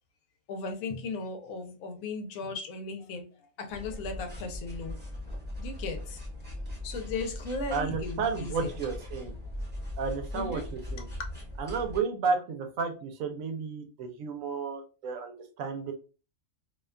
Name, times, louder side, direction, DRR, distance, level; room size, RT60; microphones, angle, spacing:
voice 1, 0.5-5.0 5.6-6.2 6.8-8.7 10.3-10.7 11.0-11.3, left 3 dB, 85° left, 1.0 m, -37 dB
sound 1, 3.7-12.0, left 1 dB, 10° right, 0.9 m, -39 dB
voice 2, 7.7-9.3 10.0-11.1 11.6-15.9, right 5 dB, 75° right, 1.0 m, -32 dB
2.6 x 2.2 x 2.3 m
omnidirectional pair, 1.4 m